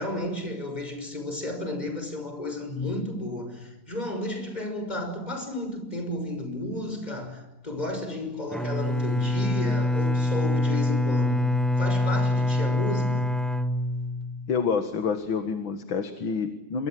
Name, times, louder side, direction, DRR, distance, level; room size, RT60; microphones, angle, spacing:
voice 1, 0.0-13.4, left 1 dB, 20° left, 6.1 m, -33 dB
Bowed string instrument, 8.5-14.5, left 1 dB, ahead, 1.5 m, -25 dB
voice 2, 14.5-16.9, left 5 dB, 70° left, 2.4 m, -28 dB
27.0 x 24.5 x 7.7 m
omnidirectional pair, 2.2 m